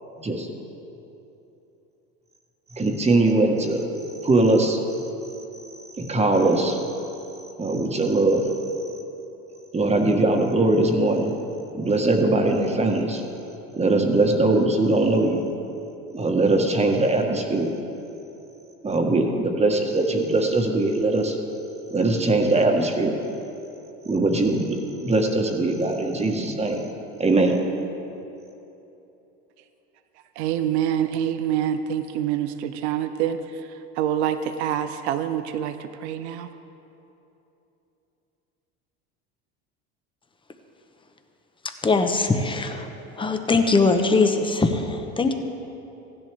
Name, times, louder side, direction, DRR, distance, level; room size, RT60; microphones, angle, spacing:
voice 1, 2.7-3.8 4.2-4.8 6.0-6.8 7.6-8.4 9.7-11.3 11.7-13.2 13.7-15.4 16.1-17.7 18.8-21.4 21.9-23.1 24.0-24.6 25.0-26.8 27.2-27.5, right 2 dB, 20° right, 2 dB, 1.5 m, -21 dB
voice 2, 30.4-33.4 34.0-36.5, right 10 dB, 85° right, 10 dB, 0.6 m, -26 dB
voice 3, 41.8-42.9 43.2-45.3, left 3 dB, 15° left, 6 dB, 1.0 m, -21 dB
15.5 x 11.0 x 3.5 m, 3.0 s
supercardioid pair, 90°, 33 cm